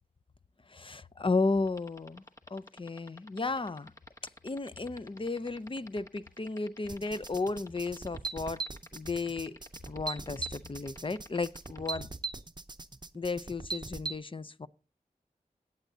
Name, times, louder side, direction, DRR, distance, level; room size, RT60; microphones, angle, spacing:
voice 1, 0.7-2.2 2.5-3.9 4.4-8.6 8.9-9.6 9.9-12.1 13.1-14.7, left 3 dB, 35° left, 0.6 m, -34 dB
sound 1, 1.7-12.0, left 2 dB, 20° left, 1.1 m, -50 dB
sound 2, 6.9-14.2, right 3 dB, 30° right, 0.7 m, -40 dB
17.5 x 8.1 x 2.7 m
wide cardioid pair, 50°, 15 cm